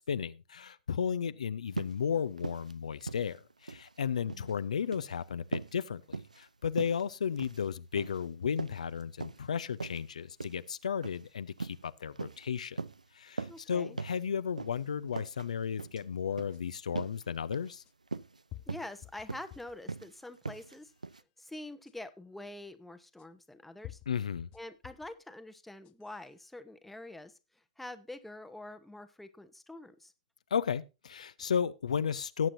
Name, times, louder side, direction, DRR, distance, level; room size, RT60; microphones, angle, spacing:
voice 1, 0.0-12.8 13.1-17.8 24.1-24.5 30.5-32.5, left 7 dB, 70° left, 0.6 m, -34 dB
sound 1, 1.7-2.0 2.4-2.7 3.0-3.9 4.2-4.5 4.8-5.1 5.5-5.8 6.1-6.4 6.8-7.0 7.4-7.7 8.0-8.2 8.6-9.4 9.8-10.0 10.4-10.6 11.0-11.2 11.6-11.8 12.2-12.5 12.8-13.0 13.4-13.6 14.0-14.2 14.6-14.8 15.1-15.5 15.8-16.0 16.4-16.6 17.0-17.2 17.5-17.7 18.1-18.4 18.7-19.0 19.3-19.6 19.9-20.1 20.5-20.8 21.0-21.2, right 3 dB, 90° right, 0.5 m, -39 dB
voice 2, 13.5-14.0 18.7-20.9 21.4-24.0 24.5-27.4 27.8-30.1, left 2 dB, 5° left, 0.9 m, -46 dB
sound 2, 16.5-16.6 17.8-17.9 18.5-19.8 20.3-20.9 21.9-22.0 23.2-23.3 23.8-25.1 25.7-26.2, left 16 dB, 30° left, 0.5 m, -50 dB
18.0 x 7.5 x 2.6 m
figure-of-eight pair, 115°, 4 cm